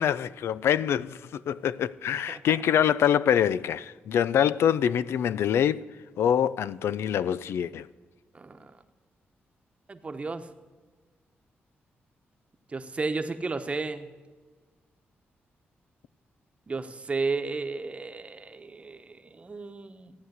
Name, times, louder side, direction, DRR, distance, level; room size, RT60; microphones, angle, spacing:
voice 1, 0.0-5.8 6.2-7.9, left 9 dB, 85° left, 0.4 m, -25 dB
voice 2, 8.3-8.7 9.9-10.5 12.7-14.1 16.7-20.1, right 3 dB, 30° right, 1.0 m, -33 dB
15.0 x 9.4 x 8.1 m
cardioid pair, 115°, 4 cm